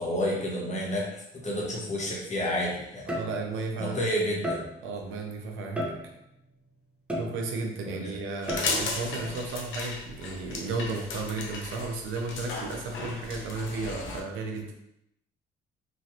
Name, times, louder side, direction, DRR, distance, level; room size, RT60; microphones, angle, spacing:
voice 1, 0.0-3.1 3.8-4.7 7.9-8.1 9.1-9.3, equal, 35° left, -3 dB, 1.0 m, -30 dB
sound 1, 1.9-2.1 3.1-3.7 4.4-5.0 5.8-6.4 7.1-7.8 8.5-9.0, equal, 5° right, 0.7 m, -34 dB
voice 2, 3.1-4.1 4.8-6.0 7.1-14.7, right 3 dB, 85° right, 2 dB, 0.6 m, -34 dB
sound 2, 8.4-14.2, left 3 dB, 75° left, 0.6 m, -35 dB
3.1 x 2.4 x 2.7 m, 0.80 s
cardioid pair, 90°, 20 cm